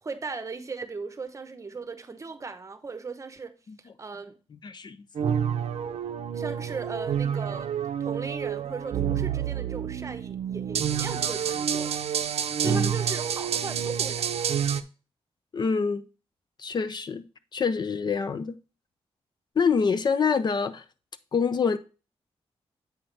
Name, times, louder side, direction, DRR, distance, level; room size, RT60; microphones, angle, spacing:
voice 1, 0.0-3.5 4.0-4.4 6.3-7.7 8.0-12.0 12.6-14.5, right 4 dB, 30° right, 0.8 m, -37 dB
voice 2, 4.6-5.0 12.6-12.9 15.5-16.0 16.6-17.2 17.5-18.5 19.6-20.8 21.3-21.8, left 5 dB, 45° left, 0.5 m, -26 dB
sound 1, 5.2-14.8, right 8 dB, 75° right, 0.5 m, -28 dB
7.8 x 5.6 x 3.2 m
wide cardioid pair, 125°, 11 cm